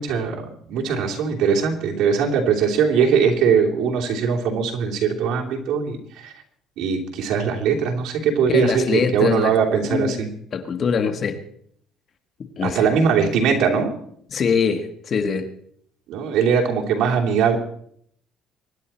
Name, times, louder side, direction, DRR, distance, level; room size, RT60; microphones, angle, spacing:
voice 1, 0.0-6.3 6.8-10.3 12.6-13.9 16.1-17.6, right 6 dB, 65° right, 3.0 m, -21 dB
voice 2, 8.5-9.5 9.9-11.4 12.6-12.9 14.3-15.5, left 6 dB, 40° left, 1.5 m, -23 dB
24.0 x 10.5 x 4.3 m
cardioid pair, 145°, 0 cm